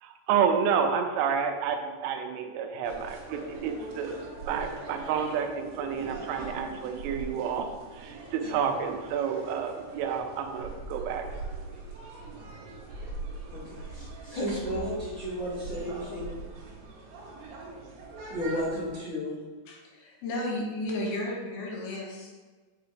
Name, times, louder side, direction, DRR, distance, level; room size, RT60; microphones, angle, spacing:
voice 1, 0.0-4.2 4.5-7.7 7.9-11.2, right 7 dB, 90° right, 5 dB, 3.2 m, -29 dB
sound 1, 2.8-19.0, right 3 dB, 65° right, 3.1 m, -41 dB
voice 2, 13.5-16.3 18.3-19.4, equal, 50° left, -14 dB, 1.2 m, -33 dB
voice 3, 19.7-22.4, left 1 dB, 75° left, -2 dB, 2.4 m, -33 dB
7.7 x 4.7 x 3.3 m, 1.4 s
omnidirectional pair, 5.6 m